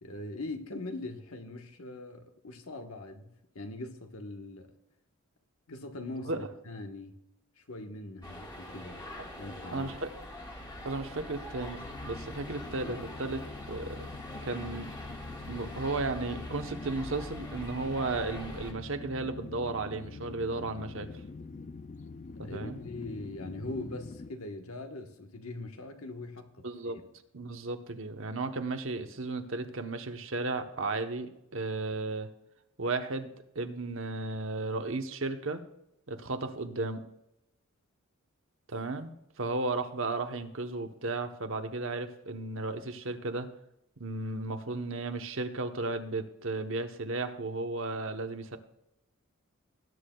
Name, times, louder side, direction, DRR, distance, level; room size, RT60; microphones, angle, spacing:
voice 1, 0.0-4.7 5.7-7.1 7.7-9.0 9.4-9.9 22.4-26.7, left 2 dB, 75° left, 1.3 m, -41 dB
sound 1, 8.2-18.7, left 1 dB, 20° left, 1.6 m, -44 dB
voice 2, 9.7-10.1 10.8-11.8 12.1-14.1 14.4-14.9 15.5-21.1 22.4-22.8 26.6-27.0 27.3-32.3 32.8-33.3 33.5-35.6 36.1-37.0 38.7-43.5 44.0-48.6, right 3 dB, 65° right, 1.0 m, -34 dB
sound 2, 10.6-24.3, left 3 dB, 35° left, 0.3 m, -45 dB
19.5 x 9.6 x 2.3 m
head